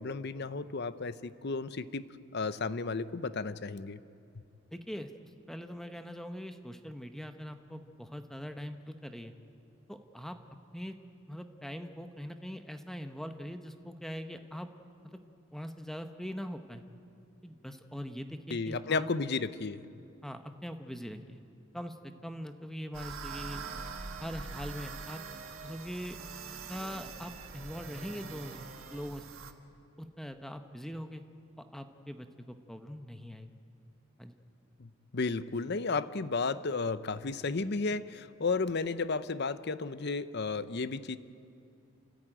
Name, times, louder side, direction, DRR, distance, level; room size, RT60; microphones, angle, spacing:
voice 1, 0.0-2.1 2.3-4.0 18.5-19.8 34.8-41.2, left 4 dB, 55° left, 14 dB, 0.7 m, -33 dB
voice 2, 4.7-5.1 5.5-9.3 9.9-10.4 10.7-11.0 11.3-14.7 15.0-15.2 15.5-16.8 17.4-19.1 20.2-21.4 21.7-23.6 24.2-25.2 25.6-26.2 26.7-29.3 30.0-31.2 31.7-33.5 34.2-34.4, equal, ahead, 7 dB, 0.8 m, -42 dB
sound 1, 22.9-29.5, right 5 dB, 85° right, 1.4 m, -44 dB
sound 2, 23.3-29.1, right 4 dB, 35° right, 1.0 m, -50 dB
29.5 x 13.5 x 9.0 m, 2.5 s
head